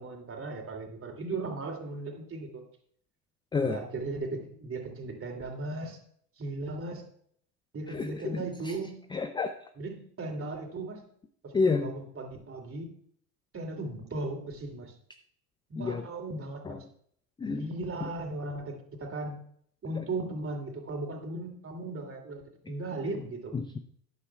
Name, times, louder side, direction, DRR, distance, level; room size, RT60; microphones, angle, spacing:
voice 1, 0.0-2.6 3.6-6.0 6.4-7.0 7.7-9.1 9.8-11.0 11.4-12.9 13.5-14.9 15.7-16.8 17.5-19.4 19.8-23.5, right 2 dB, 25° right, 2 dB, 2.9 m, -37 dB
voice 2, 7.9-8.7 9.1-9.5 11.5-11.9 15.8-16.1 16.6-16.8 17.4-17.7 23.5-23.8, left 4 dB, 10° left, 9 dB, 0.4 m, -30 dB
13.5 x 9.7 x 2.3 m, 0.63 s
hypercardioid pair, 75°, 49 cm